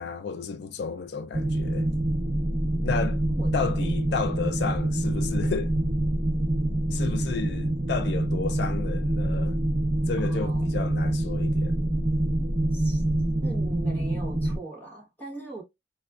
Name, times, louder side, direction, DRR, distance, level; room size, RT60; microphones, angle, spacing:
voice 1, 0.0-1.9 2.8-3.2 3.5-5.7 6.9-9.6 10.1-11.8, left 5 dB, 70° left, 0.4 m, -32 dB
sound 1, 1.3-14.6, right 1 dB, 30° right, 0.8 m, -26 dB
voice 2, 3.3-4.3 10.2-10.7 12.7-13.0 13.4-15.6, right 2 dB, 10° left, 1.1 m, -41 dB
4.1 x 2.3 x 2.3 m
head